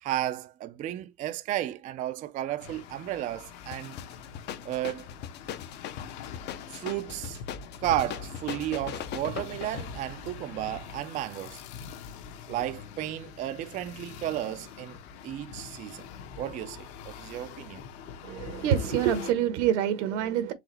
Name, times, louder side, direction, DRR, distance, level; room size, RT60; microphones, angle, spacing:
voice 1, 0.0-3.9 4.6-5.1 6.7-7.4 7.8-11.6 12.5-15.0 15.2-16.1 16.4-17.8, right 13 dB, 25° right, 0.4 m, -33 dB
sound 1, 2.6-19.3, left 6 dB, 65° left, 1.1 m, -44 dB
sound 2, 3.7-10.0, left 10 dB, 30° left, 0.5 m, -39 dB
voice 2, 18.2-20.5, right 9 dB, 80° right, 1.2 m, -26 dB
4.8 x 3.6 x 3.1 m
supercardioid pair, 135°, 35 cm